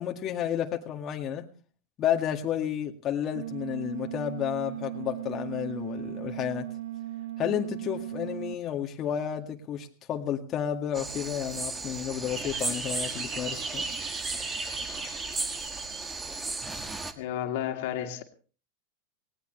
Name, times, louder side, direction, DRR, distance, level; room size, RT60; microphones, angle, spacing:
voice 1, 0.0-1.5 2.0-6.7 7.4-13.8, left 10 dB, 35° left, 2 dB, 2.0 m, -31 dB
sound 1, 3.3-8.5, right 14 dB, 80° right, 1.2 m, -37 dB
sound 2, 10.9-17.1, right 3 dB, 15° right, 1.7 m, -36 dB
sound 3, 12.3-16.0, right 4 dB, 30° right, 4.3 m, -37 dB
voice 2, 17.1-18.2, left 10 dB, 65° left, 5 dB, 2.5 m, -32 dB
19.0 x 18.5 x 3.3 m, 0.38 s
hypercardioid pair, 105°, 0 cm